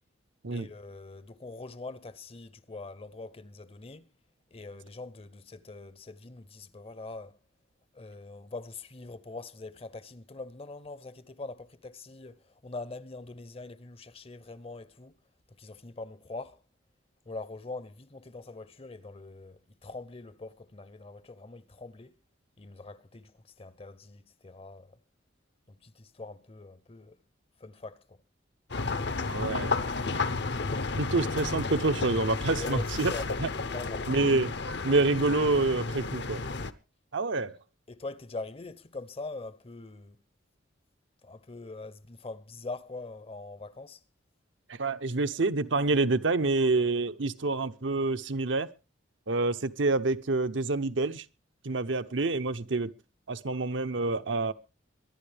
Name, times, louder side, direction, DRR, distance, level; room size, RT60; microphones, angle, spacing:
voice 1, 0.5-4.1 4.5-7.4 7.9-15.2 15.5-16.6 17.3-22.2 22.6-25.0 25.7-27.2 27.6-28.2 32.5-33.3 33.7-34.1 37.4-37.5 37.9-40.2 41.2-44.0, left 3 dB, 30° left, 0.7 m, -43 dB
sound 1, 28.7-36.7, left 3 dB, 60° left, 0.9 m, -32 dB
voice 2, 29.3-29.8 31.0-33.1 33.4-33.5 34.1-34.5 34.8-36.4 37.1-37.5 44.7-48.7 49.3-51.2 51.6-52.9 53.3-54.5, right 3 dB, 70° right, 0.8 m, -27 dB
23.5 x 11.0 x 3.4 m
head